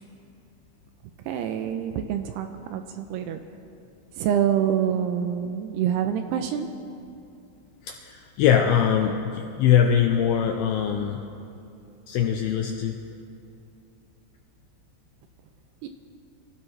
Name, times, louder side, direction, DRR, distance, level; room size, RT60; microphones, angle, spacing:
voice 1, 1.3-3.4 4.2-6.7 15.8-15.9, right 9 dB, 80° right, 7 dB, 2.5 m, -26 dB
voice 2, 7.8-11.2 12.1-13.0, left 8 dB, 90° left, 3 dB, 2.2 m, -22 dB
25.5 x 15.5 x 3.3 m, 2.6 s
omnidirectional pair, 5.1 m